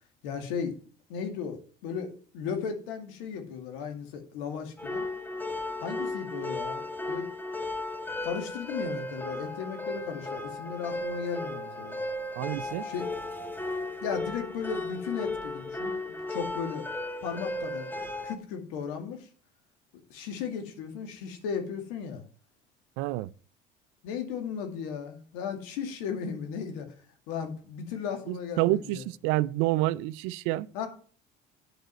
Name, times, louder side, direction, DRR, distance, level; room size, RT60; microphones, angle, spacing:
voice 1, 0.2-0.8 1.1-5.0 5.8-7.3 8.2-12.0 12.8-13.0 14.0-16.9 17.2-17.9 18.2-19.3 20.1-22.2 24.0-26.9 27.3-29.0 30.7-30.9, left 6 dB, 85° left, 2.3 m, -36 dB
sound 1, 4.8-18.3, left 2 dB, 10° left, 1.4 m, -35 dB
voice 2, 12.4-12.9 23.0-23.3 28.3-30.9, right 17 dB, 80° right, 0.5 m, -28 dB
9.0 x 5.2 x 7.8 m
supercardioid pair, 90°, 20 cm